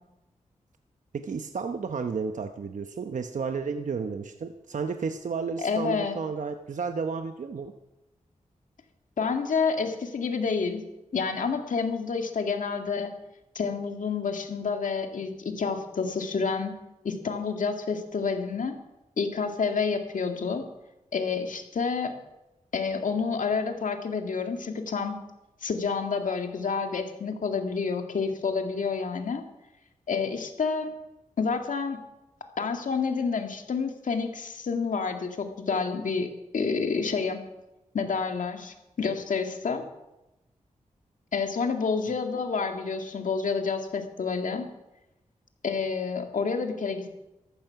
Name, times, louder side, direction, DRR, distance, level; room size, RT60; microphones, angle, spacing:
voice 1, 1.1-7.7, right 5 dB, 70° right, 7 dB, 0.9 m, -32 dB
voice 2, 5.6-6.2 9.2-10.8 11.1-13.1 13.6-16.7 17.0-18.8 19.2-20.6 21.1-22.1 22.7-25.2 25.6-29.4 30.1-30.9 31.4-32.0 32.6-37.4 37.9-39.8 41.3-44.7 45.6-47.1, left 5 dB, 75° left, 5 dB, 2.1 m, -29 dB
14.0 x 13.5 x 5.9 m, 0.97 s
cardioid pair, 50°, 13 cm